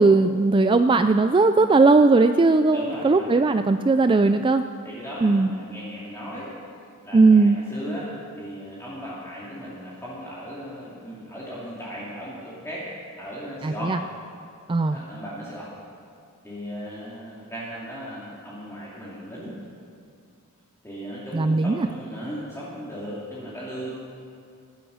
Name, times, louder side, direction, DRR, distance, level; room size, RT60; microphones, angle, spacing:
voice 1, 0.0-4.6 5.2-5.5 7.1-7.6 13.6-14.0 14.7-15.0 21.3-21.9, right 3 dB, 20° right, 9 dB, 0.3 m, -18 dB
voice 2, 2.7-3.3 4.8-6.5 7.0-8.1 8.4-12.9 13.2-13.9 14.8-15.7 16.4-19.6 20.8-23.9, equal, 15° left, -8 dB, 2.7 m, -37 dB
19.5 x 11.0 x 6.4 m, 2.3 s
head